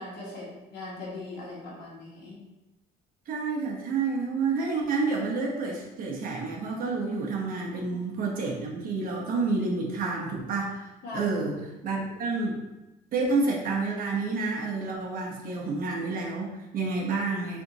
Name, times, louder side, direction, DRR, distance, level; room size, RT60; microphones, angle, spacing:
voice 1, 0.0-2.4 7.9-8.0 11.0-11.3, left 2 dB, 80° left, -5 dB, 1.5 m, -40 dB
voice 2, 3.3-10.9 11.1-11.6 11.8-12.6 13.1-17.6, right 3 dB, 55° right, -1 dB, 1.0 m, -29 dB
3.4 x 2.7 x 4.0 m, 1.0 s
cardioid pair, 110°, 17 cm